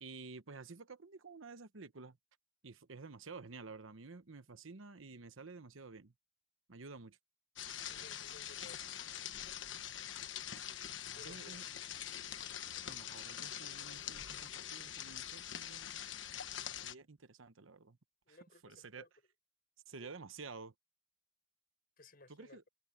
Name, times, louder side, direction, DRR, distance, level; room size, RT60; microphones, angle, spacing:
voice 1, 0.0-2.2 2.6-6.1 6.7-7.2 11.2-11.6 12.0-12.4 12.8-15.9 16.8-18.0 18.3-18.4 18.6-19.1 19.9-20.7 22.3-22.6, right 4 dB, 85° right, 1.1 m, -51 dB
sound 1, 7.6-16.9, left 10 dB, 65° left, 1.3 m, -44 dB
voice 2, 7.9-8.8 11.1-11.7 18.3-19.1 20.0-20.1 22.0-22.7, left 2 dB, 50° left, 6.1 m, -59 dB
head